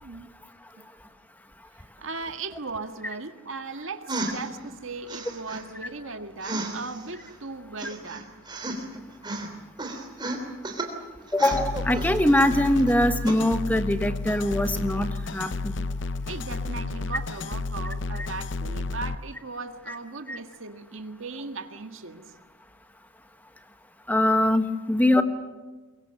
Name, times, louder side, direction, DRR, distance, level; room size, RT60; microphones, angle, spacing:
voice 1, 2.0-8.3 16.3-22.2, right 3 dB, 80° right, 7 dB, 1.7 m, -37 dB
sound 1, 4.1-4.5 5.1-5.6 6.4-7.3 7.8-9.0 9.2-9.5 9.8-10.9 11.3-12.9 13.2-13.4, right 2 dB, 20° right, 3.2 m, -33 dB
voice 2, 11.3-15.8 18.2-18.3 19.9-20.0 20.3-20.4 24.1-25.2, left 1 dB, 10° left, 8 dB, 1.3 m, -23 dB
sound 2, 11.5-19.2, left 3 dB, 60° left, 0.7 m, -31 dB
23.5 x 23.0 x 7.7 m, 1.2 s
head